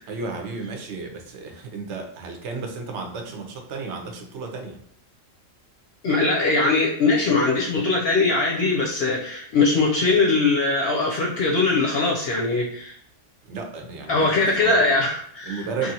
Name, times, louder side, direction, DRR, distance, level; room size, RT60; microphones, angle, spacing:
voice 1, 0.1-4.8 13.4-14.8 15.5-15.9, right 4 dB, 65° right, 3 dB, 0.9 m, -33 dB
voice 2, 6.0-12.9 14.1-15.9, left 3 dB, 60° left, -2 dB, 0.7 m, -21 dB
3.1 x 2.4 x 2.7 m, 0.66 s
omnidirectional pair, 1.3 m